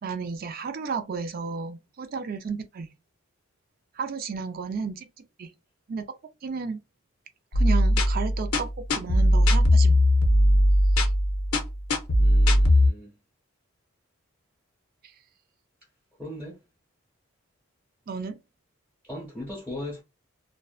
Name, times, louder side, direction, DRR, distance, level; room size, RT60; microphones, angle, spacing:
voice 1, 0.0-2.9 4.0-5.5 5.9-6.0 6.4-6.8 7.5-8.7 8.9-10.0 11.0-11.1 18.1-18.4, right 5 dB, 40° right, 0.3 m, -33 dB
sound 1, 7.5-12.9, left 1 dB, 85° left, 0.6 m, -20 dB
voice 2, 12.2-13.1 16.2-16.6 19.0-20.0, left 1 dB, ahead, 1.0 m, -38 dB
2.5 x 2.1 x 2.4 m
head